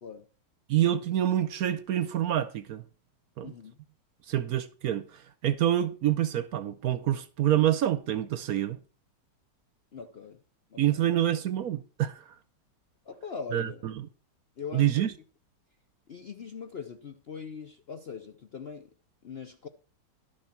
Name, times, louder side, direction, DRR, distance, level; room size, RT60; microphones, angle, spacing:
voice 1, 0.7-2.8 3.4-3.5 4.3-5.1 5.4-8.8 10.8-12.2 13.5-14.1 14.7-15.1, right 11 dB, 65° right, 1.1 m, -27 dB
voice 2, 3.4-3.8 9.9-10.4 10.7-11.0 13.1-13.9 14.6-15.0 16.1-18.9 19.2-19.7, left 6 dB, 55° left, 0.7 m, -41 dB
12.0 x 6.6 x 5.9 m
omnidirectional pair, 1.9 m